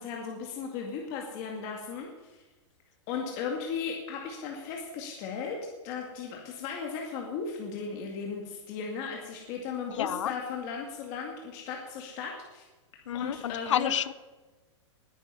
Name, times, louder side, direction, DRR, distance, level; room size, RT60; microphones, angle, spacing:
voice 1, 0.0-2.4 3.1-5.6 5.8-12.7 13.1-13.9, left 6 dB, 30° left, 0 dB, 2.1 m, -36 dB
voice 2, 10.0-10.3 13.1-14.1, left 10 dB, 75° left, 18 dB, 0.7 m, -29 dB
19.5 x 9.9 x 5.6 m, 1.2 s
supercardioid pair, 175°, 16 cm